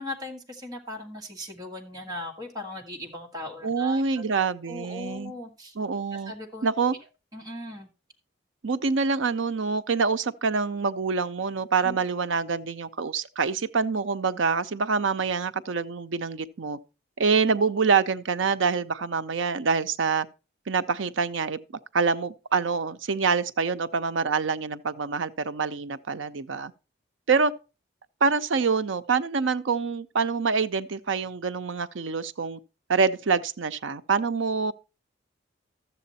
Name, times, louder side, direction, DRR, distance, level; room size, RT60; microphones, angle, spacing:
voice 1, 0.0-4.2 4.7-5.7 6.3-6.7 7.3-7.9 11.8-12.0, left 1 dB, 20° right, 1.6 m, -38 dB
voice 2, 3.6-5.3 5.8-6.3 6.6-7.0 8.6-16.8 17.2-20.3 20.7-21.6 21.9-26.7 27.3-27.5 28.2-32.6 32.9-34.7, right 5 dB, 80° right, 0.6 m, -26 dB
13.0 x 7.6 x 4.1 m
head